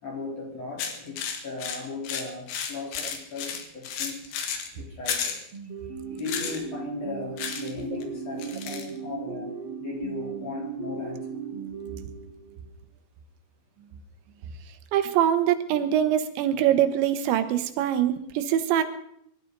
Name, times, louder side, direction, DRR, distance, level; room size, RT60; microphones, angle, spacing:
voice 1, 0.0-5.5 6.1-11.3, left 4 dB, 40° left, -2 dB, 4.5 m, -37 dB
sound 1, 0.8-4.7 5.1-5.4 6.2-6.6 7.4-7.7 8.0-8.1 8.4-8.9, left 7 dB, 75° left, 3.9 m, -32 dB
sound 2, 5.5-12.7, right 6 dB, 60° right, 3.1 m, -37 dB
voice 2, 14.9-18.8, right 10 dB, 85° right, 9 dB, 3.4 m, -23 dB
25.5 x 13.0 x 4.0 m, 0.71 s
omnidirectional pair, 5.1 m